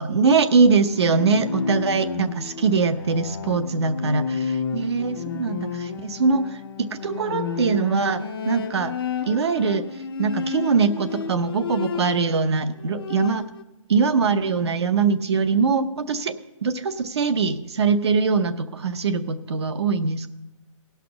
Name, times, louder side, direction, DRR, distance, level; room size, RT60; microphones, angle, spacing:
voice 1, 0.0-6.5 6.9-8.9 9.3-9.8 10.2-13.4 13.9-16.4 16.6-20.3, right 5 dB, 50° right, 11 dB, 0.8 m, -22 dB
Bowed string instrument, 0.7-12.5 12.8-13.6, left 6 dB, 45° left, 0.5 m, -31 dB
17.0 x 5.9 x 6.9 m, 0.96 s
hypercardioid pair, 170°, 18 cm